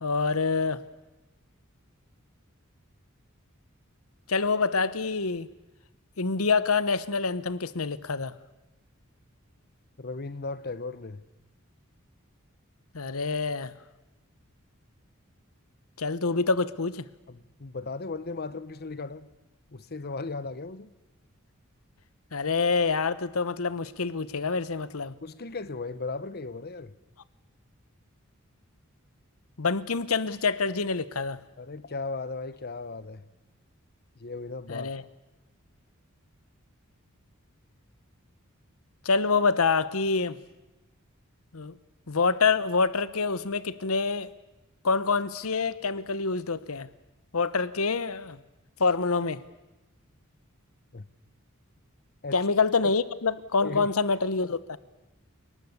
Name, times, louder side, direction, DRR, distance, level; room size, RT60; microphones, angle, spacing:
voice 1, 0.0-0.8 4.3-5.5 6.2-8.3 12.9-13.7 16.0-17.0 22.3-25.1 29.6-31.4 34.7-35.0 39.0-40.4 41.5-41.7 42.1-44.3 44.8-46.9 47.3-48.4 48.8-49.4 52.3-54.8, left 4 dB, 85° left, 1.0 m, -26 dB
voice 2, 10.0-11.2 17.3-19.3 19.7-20.9 25.2-26.9 31.6-33.3 34.2-34.9 50.9-51.1 52.2-52.4 53.6-53.9, left 3 dB, 50° left, 1.0 m, -36 dB
29.5 x 19.5 x 8.2 m
head